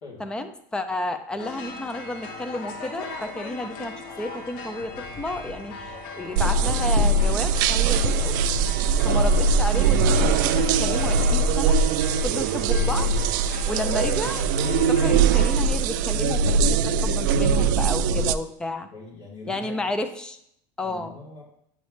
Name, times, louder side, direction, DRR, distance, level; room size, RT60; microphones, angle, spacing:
voice 1, 0.2-8.4 9.0-11.8 12.2-13.1 13.7-14.4 14.9-18.9 19.5-20.4 20.8-21.1, left 1 dB, 10° left, 8 dB, 0.4 m, -32 dB
sound 1, 1.4-15.5, left 3 dB, 65° left, 1.0 m, -39 dB
sound 2, 6.4-18.4, right 4 dB, 70° right, 0.4 m, -21 dB
voice 2, 13.8-14.3 18.9-19.9 20.8-21.4, left 2 dB, 50° left, -5 dB, 3.0 m, -43 dB
9.0 x 4.8 x 3.2 m, 0.71 s
supercardioid pair, 160°, 11 cm